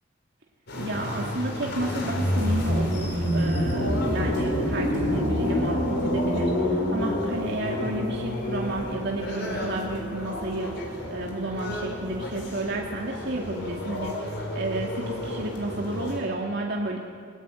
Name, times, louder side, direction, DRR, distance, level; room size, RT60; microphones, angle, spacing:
sound 1, 0.7-16.2, equal, 60° left, 4.7 m, -28 dB
voice 1, 0.8-10.7 11.1-17.0, right 1 dB, 60° right, 0 dB, 2.3 m, -31 dB
sound 2, 3.7-15.8, equal, 20° right, 2.4 m, -43 dB
21.5 x 17.5 x 9.2 m, 2.1 s
head